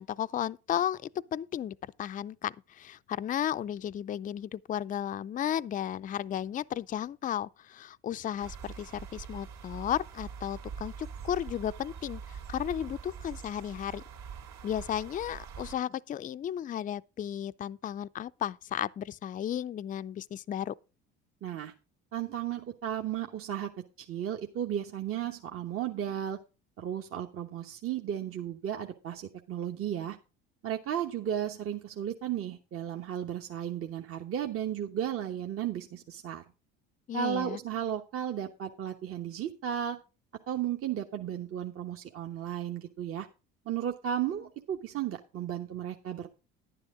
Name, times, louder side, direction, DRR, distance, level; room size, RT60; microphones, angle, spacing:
voice 1, 0.0-14.0 14.6-20.7 37.1-37.6, left 10 dB, 25° left, 0.4 m, -34 dB
sound 1, 8.4-15.8, right 6 dB, 70° right, 2.5 m, -44 dB
voice 2, 21.4-21.7 22.1-23.7 24.0-26.4 26.8-30.2 30.6-36.4 37.1-40.0 40.5-43.3 43.6-46.3, right 10 dB, 45° right, 1.1 m, -34 dB
11.0 x 9.9 x 3.7 m
hypercardioid pair, 75°, 30 cm